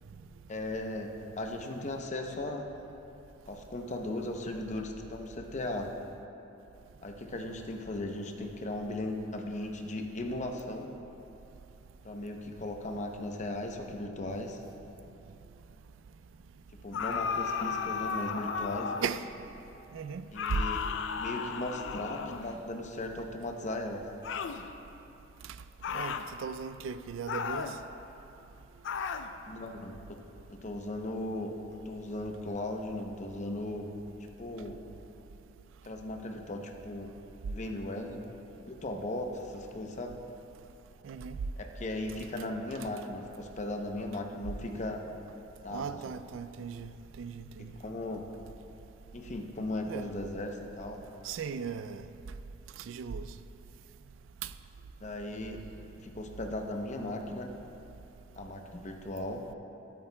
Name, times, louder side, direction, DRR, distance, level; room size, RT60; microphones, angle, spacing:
voice 1, 0.5-2.7 3.5-5.9 7.0-10.9 12.0-14.6 16.8-18.9 20.3-20.8 21.2-24.1 29.5-30.2 30.5-33.9 34.4-34.8 35.8-37.1 37.5-38.2 38.7-40.2 41.6-45.0 45.6-46.0 47.6-48.3 49.1-51.0 55.0-55.6 56.0-57.5 58.4-59.5, left 1 dB, 40° left, 3 dB, 0.7 m, -37 dB
sound 1, 16.9-19.2 20.3-22.6 24.2-24.6 25.8-26.3 27.3-27.8 28.8-29.3, left 6 dB, 70° left, 0.4 m, -34 dB
voice 2, 25.9-27.8 41.0-41.4 45.7-47.8 49.8-50.1 51.2-52.1 52.8-53.3 54.4-54.5, right 6 dB, 85° right, 12 dB, 0.4 m, -37 dB
12.5 x 12.0 x 2.2 m, 3.0 s
head